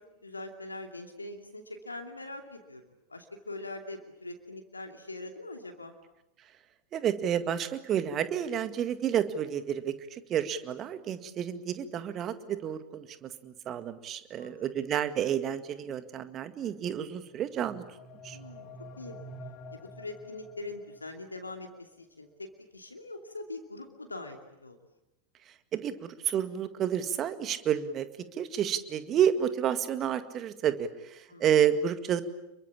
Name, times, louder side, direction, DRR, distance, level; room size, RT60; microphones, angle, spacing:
voice 1, 0.2-2.8 3.1-5.9 14.4-14.8 18.3-18.7 19.0-19.2 19.7-22.5 22.7-24.8 31.3-31.5, left 2 dB, 80° left, 4 dB, 2.7 m, -42 dB
voice 2, 6.9-17.8 18.2-18.4 25.5-28.1 28.3-32.2, right 9 dB, 30° right, 11 dB, 2.0 m, -30 dB
sound 1, 17.2-21.2, equal, 35° left, 2.7 m, -48 dB
28.5 x 23.0 x 8.7 m, 0.91 s
figure-of-eight pair, 90°, 0 cm